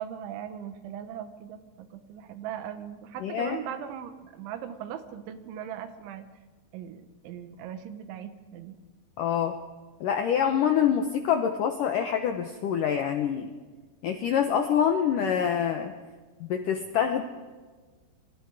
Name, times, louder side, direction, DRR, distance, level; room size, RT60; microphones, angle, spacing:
voice 1, 0.0-6.3 6.7-8.8, right 9 dB, 85° right, 10 dB, 3.7 m, -39 dB
voice 2, 3.2-3.6 9.2-9.6 10.0-13.5 14.0-15.9 16.4-17.2, left 8 dB, 80° left, 6 dB, 1.9 m, -26 dB
27.0 x 23.5 x 4.9 m, 1.4 s
omnidirectional pair, 5.3 m